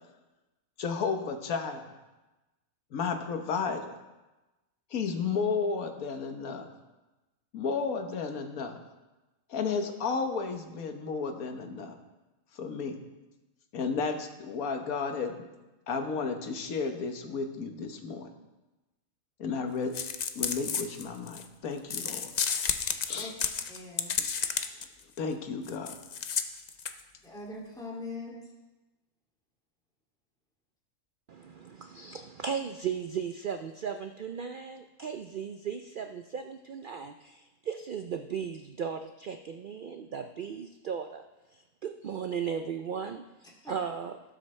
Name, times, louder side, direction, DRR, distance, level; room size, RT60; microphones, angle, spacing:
voice 1, 0.8-1.9 2.9-3.9 4.9-6.7 7.5-8.8 9.5-12.0 12.5-13.0 13.7-15.4 15.9-18.3 19.4-19.9 20.3-22.3 23.1-23.3 25.2-26.0, left 5 dB, 80° left, 5 dB, 1.5 m, -33 dB
sound 1, 19.9-21.4 21.9-24.8 25.2-25.3 25.6-27.0, left 6 dB, 60° left, 0.4 m, -31 dB
voice 2, 23.7-24.1 27.2-28.4 43.4-43.7, left 3 dB, 5° left, -4 dB, 2.3 m, -42 dB
voice 3, 31.3-41.2 41.5-43.2 43.6-44.2, right 7 dB, 75° right, 7 dB, 0.4 m, -36 dB
18.5 x 8.0 x 3.2 m, 1.1 s
omnidirectional pair, 1.5 m